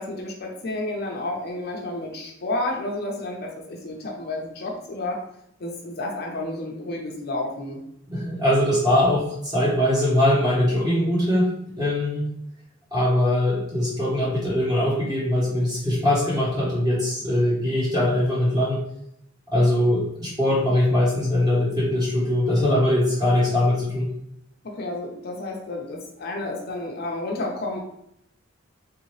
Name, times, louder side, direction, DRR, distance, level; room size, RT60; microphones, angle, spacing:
voice 1, 0.0-5.2 5.6-7.8 24.6-27.8, left 2 dB, 55° left, 0 dB, 0.6 m, -31 dB
voice 2, 8.1-11.5 11.8-12.2 12.9-18.8 19.5-24.1, left 1 dB, 20° right, -6 dB, 1.4 m, -21 dB
3.3 x 2.8 x 3.1 m, 0.76 s
head